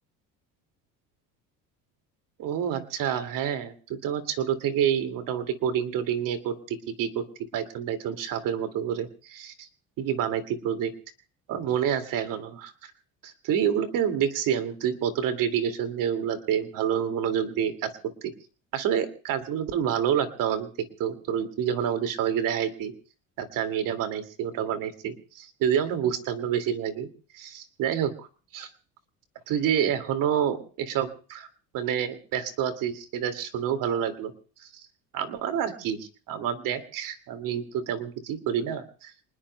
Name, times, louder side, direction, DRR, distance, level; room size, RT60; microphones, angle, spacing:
voice 1, 2.4-7.2 7.5-9.7 10.0-10.9 11.5-12.7 13.2-17.9 18.2-18.3 18.7-20.7 21.0-22.9 23.4-27.1 27.3-28.1 28.5-28.7 29.5-31.5 31.7-34.3 34.6-34.9 35.1-39.1, right 9 dB, 65° right, 7 dB, 2.3 m, -28 dB
28.0 x 20.0 x 2.2 m, 0.38 s
cardioid pair, 120°, 36 cm